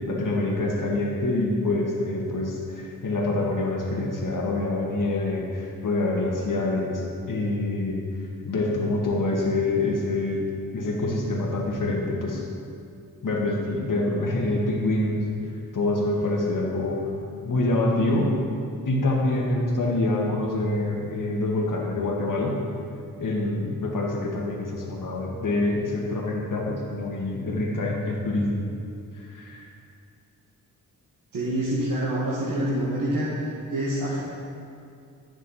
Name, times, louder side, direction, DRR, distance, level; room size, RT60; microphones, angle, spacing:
voice 1, 0.1-8.0 8.5-10.4 10.7-12.4 13.2-15.2 15.7-17.1 17.4-18.3 18.9-22.6 23.2-28.7 29.1-29.6, left 2 dB, 55° left, -2 dB, 1.8 m, -26 dB
voice 2, 31.3-33.3 33.7-34.2, right 1 dB, 60° right, -7 dB, 1.9 m, -26 dB
9.7 x 7.7 x 4.2 m, 2.4 s
cardioid pair, 50°, 38 cm